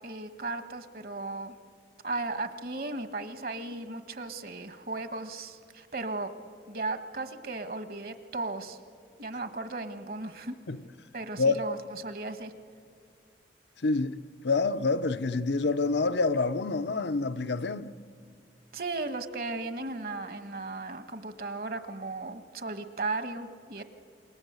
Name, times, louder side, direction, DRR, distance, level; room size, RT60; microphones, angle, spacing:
voice 1, 0.0-1.5 2.0-6.3 6.7-8.8 9.2-10.6 11.1-11.8 12.0-12.5 18.7-23.8, right 3 dB, 55° right, 1.5 m, -36 dB
voice 2, 13.8-14.2 14.4-18.0, left 3 dB, 75° left, 0.8 m, -27 dB
27.5 x 22.0 x 8.2 m
head